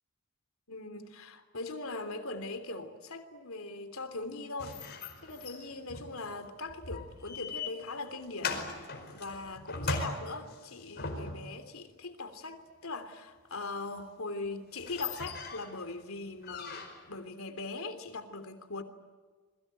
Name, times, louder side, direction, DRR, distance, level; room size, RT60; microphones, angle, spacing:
voice 1, 0.7-4.8 5.2-18.8, left 3 dB, 70° left, 10 dB, 3.2 m, -40 dB
sound 1, 4.6-11.6 14.0-14.1 14.5-14.6 14.7-15.8 16.4-17.2, left 4 dB, 50° left, 5.0 m, -40 dB
27.5 x 22.5 x 9.1 m, 1.4 s
head